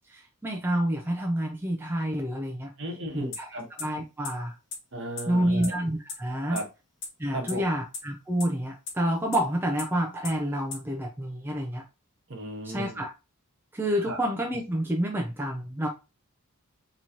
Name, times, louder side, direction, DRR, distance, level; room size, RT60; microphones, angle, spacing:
voice 1, 0.1-2.7 3.1-4.6 5.3-6.6 7.2-11.8 12.6-13.1 13.7-15.9, equal, 10° right, 0.5 m, -28 dB
voice 2, 2.8-3.7 4.9-5.8 6.5-6.6 7.3-7.6 12.3-13.0 14.0-14.2, right 1 dB, 55° right, 1.2 m, -35 dB
sound 1, 3.3-3.4 3.8-3.9 4.2-4.3 4.7-4.8 5.2-5.3 5.6-5.7 6.1-6.2 6.6-6.7 7.0-7.1 7.5-7.6 7.9-8.0 8.4-8.5 8.9-9.0 9.3-9.4 9.8-9.9 10.2-10.3 10.7-10.8, left 4 dB, 55° left, 1.2 m, -33 dB
3.9 x 3.0 x 2.8 m
head